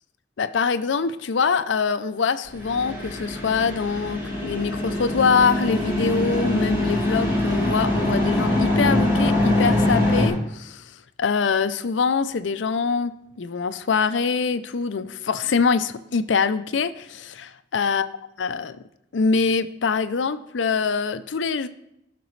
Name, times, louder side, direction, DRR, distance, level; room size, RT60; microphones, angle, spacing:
voice 1, 0.4-18.1 18.4-18.8 19.1-21.7, left 5 dB, 75° left, 12 dB, 0.5 m, -24 dB
sound 1, 2.5-10.3, left 1 dB, 20° right, 2.4 m, -23 dB
14.5 x 6.0 x 3.2 m, 0.83 s
head